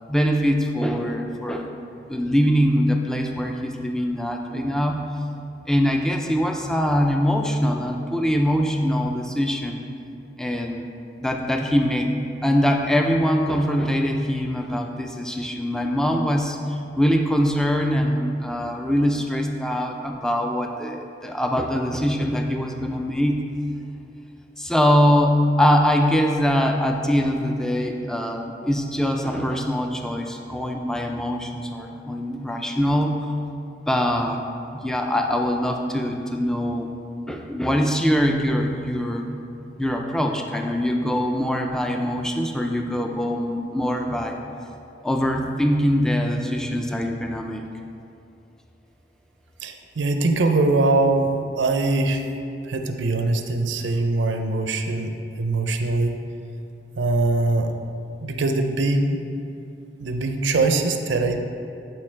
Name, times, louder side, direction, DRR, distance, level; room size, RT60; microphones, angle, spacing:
voice 1, 0.1-1.7 2.1-5.1 5.7-9.8 10.4-10.9 11.2-12.1 12.4-23.5 24.6-33.3 33.9-34.4 34.7-36.9 37.3-39.4 39.8-44.4 45.0-47.6, equal, 5° left, 2 dB, 0.4 m, -23 dB
voice 2, 49.6-52.2 52.6-55.1 55.4-56.2 57.0-57.7 58.2-59.2 60.0-61.4, right 2 dB, 80° right, 6 dB, 0.6 m, -22 dB
11.0 x 4.5 x 3.3 m, 2.6 s
head